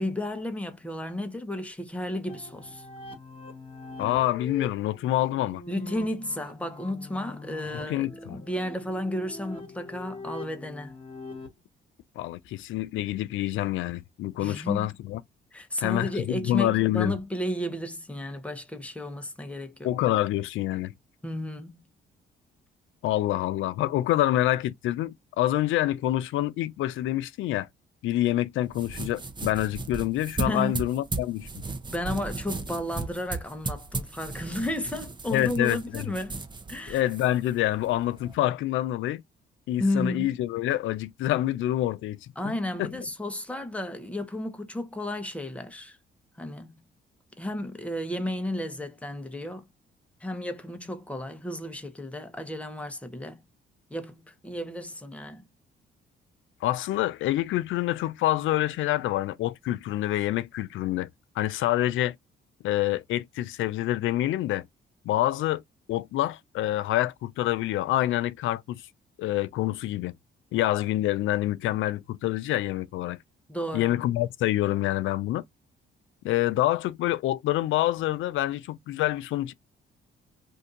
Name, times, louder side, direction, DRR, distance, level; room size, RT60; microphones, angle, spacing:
voice 1, 0.0-2.9 5.7-10.9 14.4-14.9 15.5-19.9 21.2-21.9 30.4-30.8 31.9-36.4 36.7-37.1 39.8-40.3 42.4-46.0 46.4-46.8 47.4-49.6 50.2-53.4 53.9-55.4 73.5-74.0, left 1 dB, 5° left, 0.9 m, -33 dB
sound 1, 2.3-11.5, left 3 dB, 25° left, 1.6 m, -43 dB
voice 2, 4.0-5.6 7.9-8.4 12.2-15.2 15.8-17.2 19.8-20.9 23.0-27.7 28.0-31.5 35.3-36.0 36.9-39.2 39.7-42.5 42.8-42.9 56.6-61.1 61.4-62.1 62.6-64.6 65.1-65.6 65.9-68.8 69.2-70.1 70.5-73.2 73.7-75.4 76.2-79.5, left 14 dB, 80° left, 0.5 m, -27 dB
sound 2, 28.6-38.3, right 3 dB, 25° right, 0.8 m, -36 dB
2.7 x 2.6 x 3.7 m
cardioid pair, 90°, 20 cm